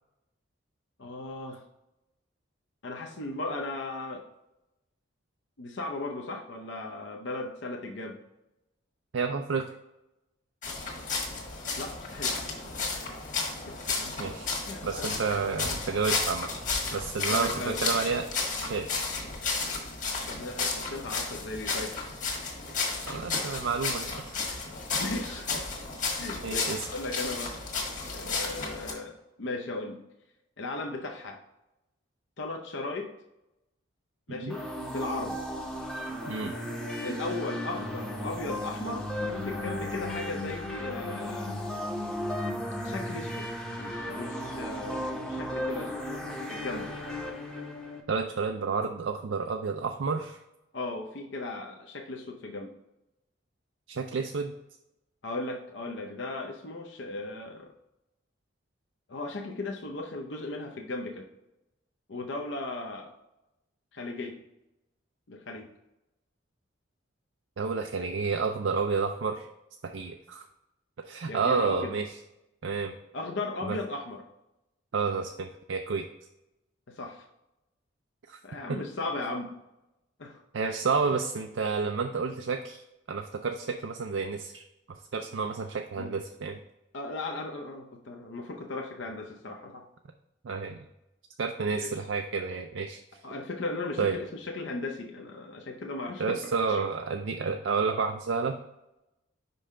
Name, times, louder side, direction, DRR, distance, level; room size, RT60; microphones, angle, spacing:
voice 1, 1.0-1.6 2.8-4.2 5.6-8.2 11.8-12.9 13.2-13.3 13.7-14.3 14.7-15.1 17.3-17.8 20.3-22.0 23.9-24.0 25.0-25.5 26.2-26.6 26.9-27.6 28.1-30.0 30.6-31.4 32.4-33.1 34.3-35.4 37.0-41.5 42.8-43.5 43.8-45.9 46.5-47.0 50.7-52.7 55.2-57.7 59.1-61.3 62.1-63.1 63.9-64.4 65.3-65.7 71.3-71.9 73.1-74.2 76.9-77.3 78.4-79.5 80.2-80.4 86.0-86.1 86.9-89.8 91.7-91.9 93.2-96.5 96.8-96.9, left 2 dB, 70° left, 2 dB, 0.7 m, -37 dB
voice 2, 9.1-9.7 14.2-14.5 14.8-16.5 16.9-18.3 18.6-18.9 23.1-24.5 26.4-26.8 34.3-34.5 36.3-36.6 48.1-50.4 53.9-54.5 67.6-69.5 69.8-70.4 71.1-72.1 72.6-72.9 73.7-73.8 74.9-76.1 78.3-78.4 78.7-78.8 80.5-82.8 83.1-84.6 85.1-86.6 90.4-90.8 91.4-93.0 94.0-94.2 96.2-98.5, right 5 dB, 75° right, 5 dB, 0.4 m, -30 dB
sound 1, 10.6-28.9, left 4 dB, 40° left, 1.4 m, -33 dB
sound 2, 34.5-48.0, left 1 dB, 5° left, 0.7 m, -35 dB
5.4 x 5.4 x 3.7 m, 0.91 s
head